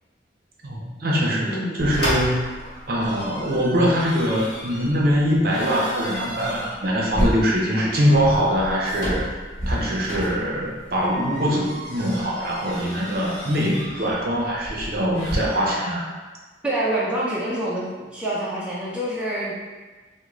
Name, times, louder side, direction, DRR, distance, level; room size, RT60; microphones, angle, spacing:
voice 1, 0.6-2.5 2.9-9.3 9.7-16.1, equal, 50° right, -3 dB, 0.6 m, -23 dB
voice 2, 1.5-1.8 16.6-19.5, right 1 dB, 5° right, -8 dB, 0.4 m, -26 dB
sound 1, 1.8-15.4, equal, 55° left, 1.2 m, -32 dB
3.7 x 2.1 x 3.0 m, 1.3 s
head